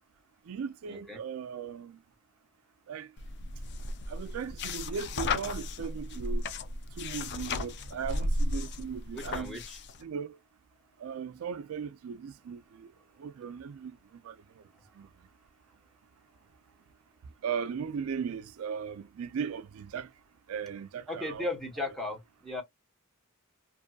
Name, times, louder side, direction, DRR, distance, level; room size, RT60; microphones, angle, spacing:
voice 1, 0.5-2.0 2.9-3.1 4.1-6.5 7.0-9.6 10.0-10.4 11.0-12.9 13.2-14.6 15.0-15.1 17.4-20.1 20.5-21.5, right 6 dB, 70° right, 0.4 m, -37 dB
sound 1, 3.2-10.0, left 2 dB, 55° left, 0.4 m, -34 dB
voice 2, 9.1-9.8 21.1-22.6, left 2 dB, ahead, 1.0 m, -36 dB
2.6 x 2.4 x 2.2 m
head